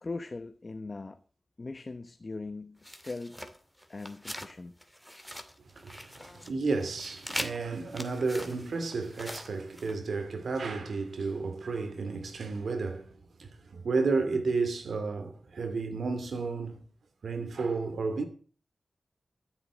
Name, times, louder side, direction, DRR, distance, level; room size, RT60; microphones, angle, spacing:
voice 1, 0.0-1.2 1.6-3.4 3.9-4.8 6.2-6.5, left 3 dB, 50° left, 1.1 m, -40 dB
sound 1, 2.8-4.5 4.8-6.5 6.8-9.9, equal, ahead, 2.3 m, -42 dB
voice 2, 5.7-16.8 17.2-18.2, right 4 dB, 85° right, 2.5 m, -32 dB
13.5 x 7.9 x 7.5 m
cardioid pair, 55°, 0 cm